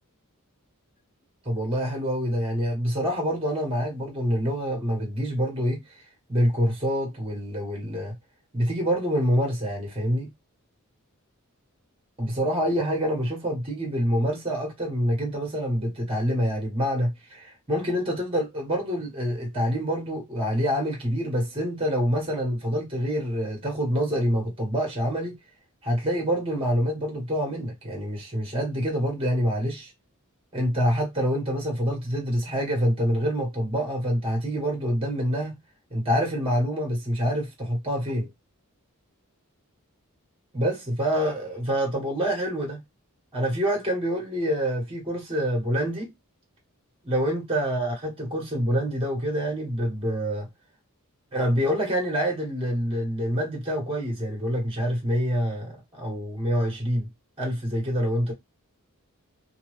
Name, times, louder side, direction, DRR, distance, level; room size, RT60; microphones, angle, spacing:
voice 1, 1.4-5.8 6.3-8.1 8.5-10.3 12.2-25.4 25.8-29.9 30.5-35.6 35.9-38.3 40.5-42.8 43.3-46.1 47.0-50.5 51.3-57.1 57.4-58.3, equal, 25° right, 1.3 m, -26 dB
2.7 x 2.6 x 3.1 m
head